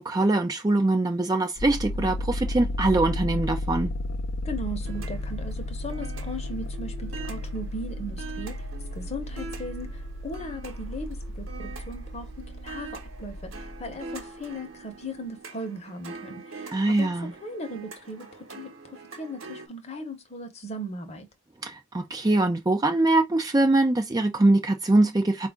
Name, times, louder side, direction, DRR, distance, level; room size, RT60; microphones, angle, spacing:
voice 1, 0.0-3.9 16.7-17.3 21.6-25.5, right 2 dB, 15° right, 0.4 m, -23 dB
sound 1, 1.6-14.2, left 1 dB, 70° left, 0.6 m, -34 dB
voice 2, 4.4-8.6 8.9-17.1 17.4-21.3, equal, 30° left, 0.9 m, -37 dB
sound 2, 4.8-19.7, right 4 dB, 60° right, 1.1 m, -44 dB
4.7 x 2.5 x 3.5 m
head